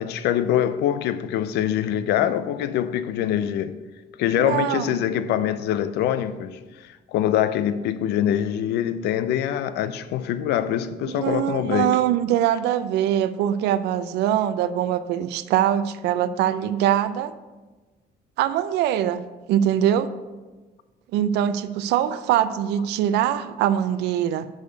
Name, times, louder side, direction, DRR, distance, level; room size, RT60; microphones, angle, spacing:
voice 1, 0.0-3.8 4.2-12.0, left 10 dB, 80° left, 0.5 m, -24 dB
voice 2, 4.4-4.9 11.0-17.3 18.4-19.2 19.5-20.1 21.1-24.5, right 11 dB, 85° right, 0.5 m, -23 dB
6.3 x 5.2 x 6.5 m
cardioid pair, 110°, 17 cm